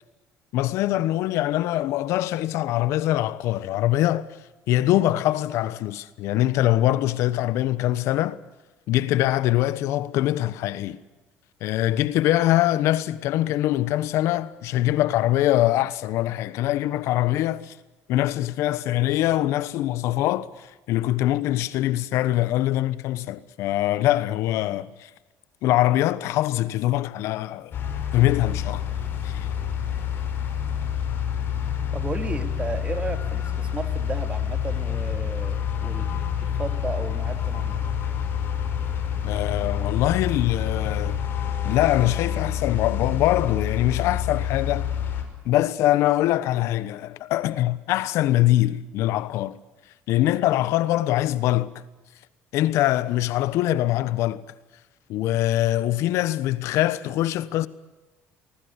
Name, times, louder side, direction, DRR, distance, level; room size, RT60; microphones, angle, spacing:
voice 1, 0.5-4.3 4.7-8.4 8.9-11.0 11.6-17.7 18.1-25.1 25.6-27.8 28.1-28.8 29.2-29.5 39.2-41.2 41.6-44.9 45.4-49.6 50.1-51.8 52.5-54.4 55.1-57.7, left 14 dB, 75° left, 1.2 m, -23 dB
sound 1, 27.7-45.2, left 8 dB, 50° left, 5.8 m, -27 dB
voice 2, 31.9-37.8, right 3 dB, 25° right, 3.2 m, -34 dB
24.0 x 20.5 x 8.3 m
cardioid pair, 105°, 5 cm